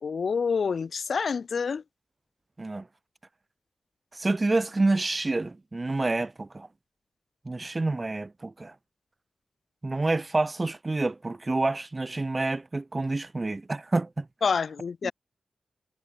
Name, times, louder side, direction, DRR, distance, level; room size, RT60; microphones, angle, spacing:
voice 1, 0.0-1.8 14.4-15.1, left 5 dB, 70° left, 0.3 m, -27 dB
voice 2, 4.1-6.7 7.5-8.7 9.8-14.3 15.0-15.1, right 2 dB, 25° right, 0.4 m, -28 dB
wide cardioid pair, 135°, 0 cm